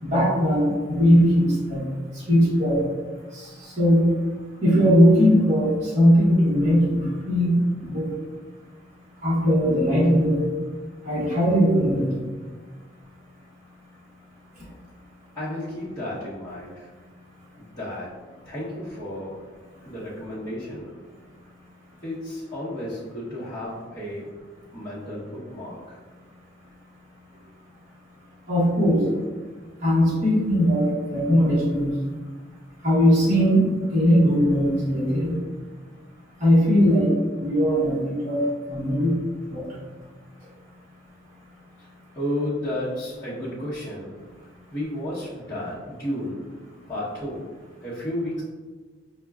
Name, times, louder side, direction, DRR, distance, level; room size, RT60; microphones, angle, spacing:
voice 1, 0.0-1.9 2.1-2.8 3.3-4.1 4.6-8.1 9.2-10.5 11.0-12.1 28.5-29.0 29.8-32.0 32.8-33.6 33.9-35.3 36.4-37.1 37.4-39.1 39.5-39.7, equal, 40° right, -8 dB, 1.0 m, -19 dB
voice 2, 15.3-16.9 17.6-18.1 18.4-19.4 19.8-21.0 22.0-24.3 24.7-26.0 42.1-44.1 44.7-46.6 46.9-47.4 47.8-48.4, left 1 dB, 15° left, -13 dB, 0.9 m, -32 dB
6.0 x 2.1 x 2.3 m, 1.4 s
head